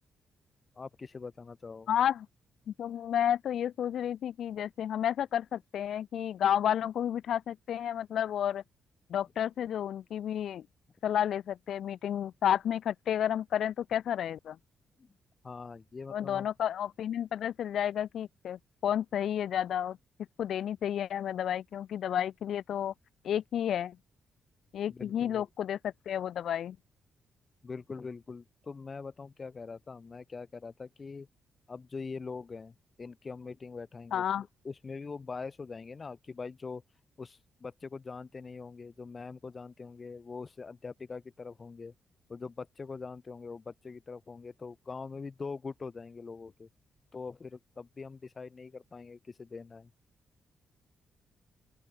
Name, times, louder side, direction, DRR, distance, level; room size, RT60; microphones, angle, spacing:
voice 1, 0.7-1.9 15.0-15.1 15.4-16.5 24.9-25.5 27.6-31.3 31.7-36.8 37.2-41.9 42.3-46.7 47.1-49.9, left 4 dB, 40° left, 5.0 m, -43 dB
voice 2, 1.9-2.3 2.8-8.6 9.1-10.6 11.0-14.6 16.1-20.0 20.4-22.9 23.2-24.0 24.7-26.8 34.1-34.4, left 10 dB, 75° left, 0.5 m, -31 dB
open air
supercardioid pair, 55°, 0 cm